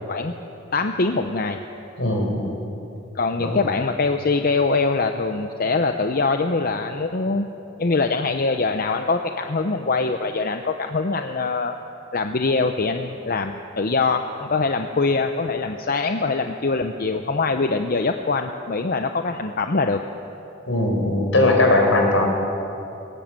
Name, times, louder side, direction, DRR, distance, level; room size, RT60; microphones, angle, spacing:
voice 1, 0.7-1.6 3.1-7.5 7.8-11.7 12.1-20.0, left 3 dB, 50° left, 6 dB, 0.7 m, -23 dB
voice 2, 2.0-2.6 3.4-3.7 20.7-22.3, left 2 dB, 75° left, 1 dB, 4.6 m, -19 dB
20.5 x 18.5 x 7.6 m, 2.9 s
head